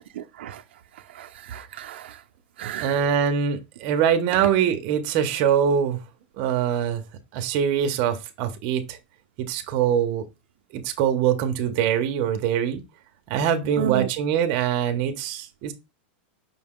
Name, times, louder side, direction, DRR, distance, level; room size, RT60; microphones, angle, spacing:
voice 1, 0.1-0.6 1.1-2.2 2.6-2.9 13.8-14.1, right 11 dB, 80° right, 0.4 m, -32 dB
voice 2, 2.8-6.0 6.4-7.0 7.3-9.0 9.4-10.2 10.7-12.8 13.3-15.7, right 8 dB, 35° right, 0.6 m, -23 dB
5.5 x 2.2 x 3.6 m
supercardioid pair, 165°, 6 cm